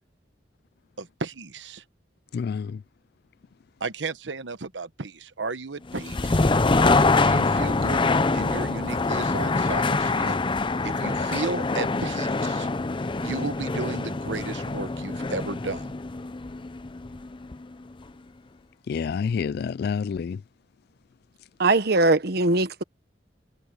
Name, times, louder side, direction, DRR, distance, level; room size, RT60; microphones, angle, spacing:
voice 1, 1.0-1.8 3.8-6.5 7.1-8.1 8.3-10.4 10.8-12.7 13.2-15.9, right 3 dB, 85° right, 1.1 m, -34 dB
voice 2, 2.3-2.8 18.9-20.4, left 6 dB, 60° left, 0.3 m, -28 dB
sound 1, 5.9-17.7, left 3 dB, 30° left, 0.7 m, -25 dB
voice 3, 21.6-22.8, right 2 dB, 60° right, 1.3 m, -21 dB
head